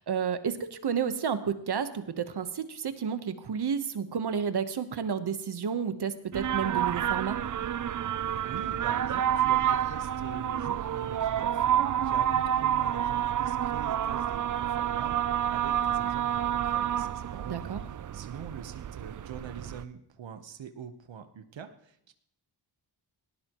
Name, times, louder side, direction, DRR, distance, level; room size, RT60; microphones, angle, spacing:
voice 1, 0.0-7.4 17.5-17.8, right 7 dB, 60° right, 10 dB, 1.1 m, -31 dB
sound 1, 6.3-19.8, right 10 dB, 45° right, 0.4 m, -29 dB
voice 2, 8.5-11.6 12.0-15.2 15.5-17.8 18.1-22.1, right 7 dB, 85° right, 9 dB, 1.1 m, -44 dB
19.0 x 18.0 x 3.0 m, 0.72 s
wide cardioid pair, 120°, 44 cm